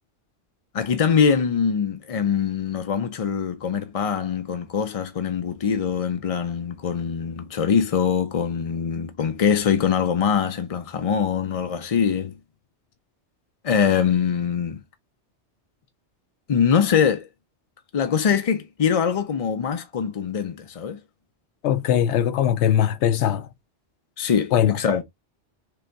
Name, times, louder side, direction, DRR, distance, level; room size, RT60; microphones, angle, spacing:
voice 1, 0.7-12.4 13.6-14.8 16.5-17.3 17.9-21.0 24.2-25.0, left 7 dB, 50° left, 0.4 m, -23 dB
voice 2, 21.6-23.5 24.5-24.8, left 10 dB, 80° left, 0.9 m, -20 dB
3.8 x 3.4 x 3.8 m
omnidirectional pair, 1.2 m